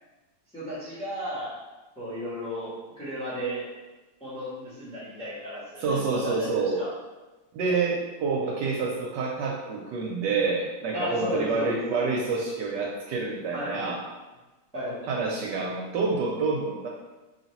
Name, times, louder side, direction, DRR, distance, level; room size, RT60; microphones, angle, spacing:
voice 1, 0.5-1.6 2.0-3.7 4.2-6.9 10.9-11.8 13.5-13.8 14.7-15.0, equal, 5° left, -8 dB, 0.8 m, -34 dB
voice 2, 5.8-6.8 7.5-14.0 15.1-16.9, right 4 dB, 75° right, -1 dB, 1.1 m, -28 dB
3.2 x 2.8 x 4.1 m, 1.1 s
omnidirectional pair, 2.1 m